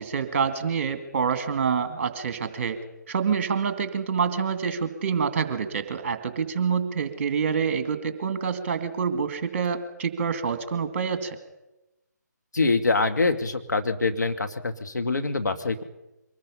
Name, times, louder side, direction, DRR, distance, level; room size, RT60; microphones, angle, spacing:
voice 1, 0.0-2.8 3.1-11.4, right 6 dB, 40° right, 9 dB, 2.3 m, -27 dB
voice 2, 12.5-15.8, left 3 dB, 70° left, 6 dB, 2.2 m, -25 dB
24.5 x 20.0 x 5.6 m, 0.96 s
figure-of-eight pair, 145°, 10 cm